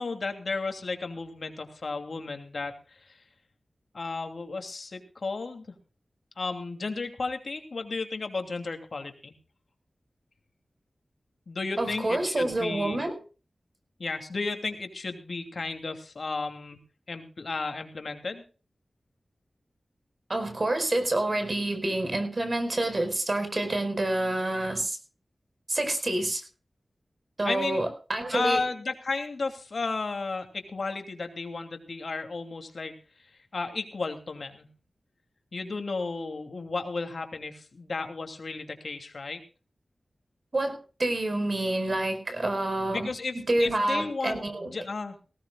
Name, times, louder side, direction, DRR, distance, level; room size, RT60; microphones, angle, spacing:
voice 1, 0.0-3.2 3.9-5.7 6.4-9.3 11.5-13.0 14.0-16.8 17.1-18.4 27.4-27.9 28.3-32.9 33.2-34.7 35.5-39.4 42.9-45.2, left 3 dB, 70° left, 6 dB, 2.8 m, -33 dB
voice 2, 11.8-13.2 20.3-25.0 25.7-26.4 27.4-28.6 40.5-43.1 43.5-44.7, right 1 dB, 45° right, 7 dB, 4.9 m, -28 dB
18.5 x 18.0 x 2.4 m, 0.35 s
cardioid pair, 55°, 0 cm